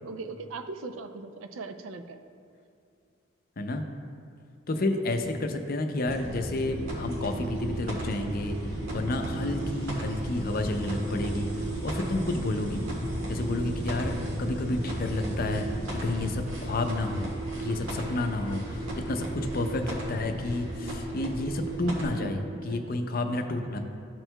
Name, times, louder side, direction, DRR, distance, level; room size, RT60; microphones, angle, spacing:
voice 1, 0.0-2.2 9.0-9.6 17.9-19.0 21.8-23.2, right 3 dB, 70° right, 9 dB, 0.4 m, -42 dB
voice 2, 4.7-8.5 8.9-12.8 13.3-15.7 16.0-17.3 17.6-22.4 22.6-23.8, left 2 dB, 45° left, 6 dB, 0.5 m, -30 dB
sound 1, 6.1-22.1, right 1 dB, 90° right, 1.6 m, -34 dB
13.0 x 4.5 x 2.2 m, 2.4 s
head